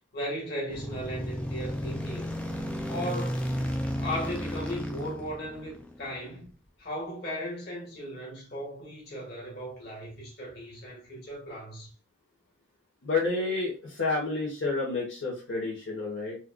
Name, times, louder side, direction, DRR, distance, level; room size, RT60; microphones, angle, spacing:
voice 1, 0.1-2.4 2.9-3.5 4.0-6.5 6.8-11.9, equal, 55° left, 1.7 m, -37 dB
sound 1, 0.7-6.2, equal, 5° left, 0.3 m, -33 dB
voice 2, 13.0-16.4, left 3 dB, 75° left, 1.1 m, -30 dB
4.3 x 2.4 x 2.2 m
head